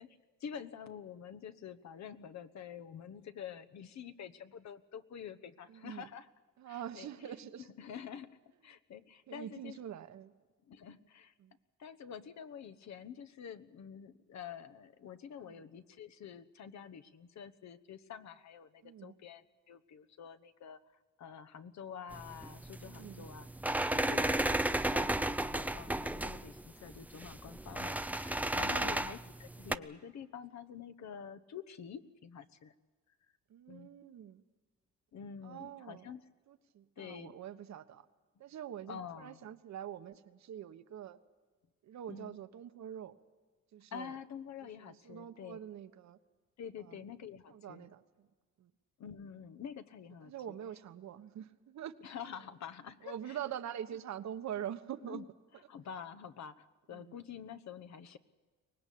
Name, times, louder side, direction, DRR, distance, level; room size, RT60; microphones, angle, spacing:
voice 1, 0.0-6.3 6.7-7.1 7.8-8.4 8.6-9.8 10.7-11.3 11.8-20.8 21.2-23.5 23.9-32.7 33.7-33.9 35.1-36.2 37.0-37.3 38.9-39.4 42.1-42.3 43.9-45.6 46.6-47.9 49.0-50.3 52.0-53.4 55.1-55.3 55.7-58.2, left 7 dB, 65° left, 13 dB, 1.2 m, -47 dB
voice 2, 5.7-6.1 6.6-7.7 9.3-10.3 11.4-11.5 15.4-15.7 18.8-19.2 22.8-23.3 28.6-29.0 33.5-34.4 35.4-36.1 36.5-38.0 38.4-41.2 41.8-43.1 43.7-44.2 44.6-46.2 46.8-47.0 47.5-48.3 48.6-48.7 50.2-51.9 53.0-55.3 56.9-57.2, right 10 dB, 65° right, 11 dB, 1.2 m, -45 dB
sound 1, 22.1-29.7, right 1 dB, 5° right, 0.6 m, -34 dB
24.0 x 19.5 x 8.5 m, 1.4 s
cardioid pair, 90°, 30 cm